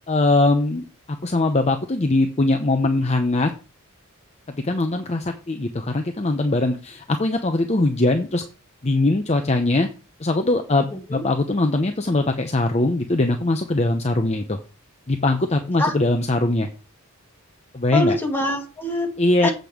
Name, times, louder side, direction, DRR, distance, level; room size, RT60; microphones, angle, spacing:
voice 1, 0.1-3.5 4.5-8.4 8.8-9.9 10.2-14.6 15.1-16.7 17.7-18.2 19.2-19.5, left 2 dB, 30° left, 5 dB, 0.7 m, -21 dB
voice 2, 10.9-11.2 15.8-15.9 17.9-19.1 19.4-19.5, left 1 dB, 10° left, 1 dB, 2.2 m, -24 dB
8.2 x 5.3 x 5.9 m, 0.33 s
head